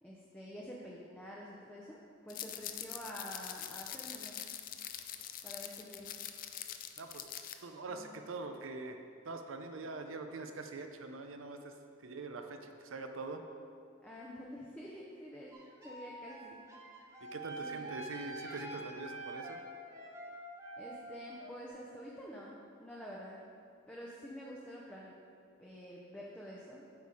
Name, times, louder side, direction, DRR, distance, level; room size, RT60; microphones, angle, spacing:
voice 1, 0.0-4.4 5.4-6.1 7.9-8.1 14.0-15.5 15.8-16.6 17.6-18.0 20.8-23.5 23.9-25.2 25.6-26.8, equal, 5° left, -4 dB, 0.6 m, -48 dB
sound 1, 2.3-7.5, left 10 dB, 45° left, 0.4 m, -44 dB
voice 2, 7.0-7.3 7.6-11.7 12.0-13.4 17.2-19.6, right 3 dB, 85° right, 6 dB, 0.6 m, -44 dB
sound 2, 15.5-21.7, right 2 dB, 15° right, 0.9 m, -46 dB
8.4 x 5.4 x 4.8 m, 2.4 s
head